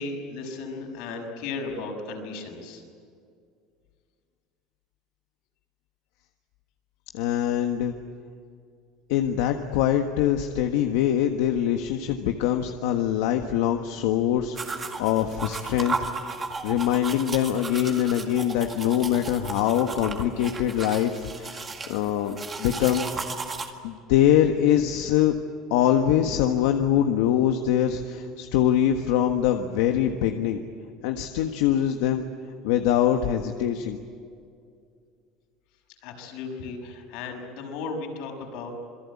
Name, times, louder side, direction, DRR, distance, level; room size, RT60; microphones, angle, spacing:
voice 1, 0.0-2.8 36.0-38.7, left 3 dB, 65° left, 2 dB, 6.2 m, -35 dB
voice 2, 7.1-7.9 9.1-15.9 16.6-23.1 23.8-25.4 25.7-30.6 31.0-32.2 32.6-34.0, left 10 dB, 85° left, 5 dB, 1.5 m, -23 dB
sound 1, 14.5-23.7, right 4 dB, 20° right, 2.0 m, -35 dB
27.5 x 22.0 x 8.6 m, 2.3 s
cardioid pair, 160°, 0 cm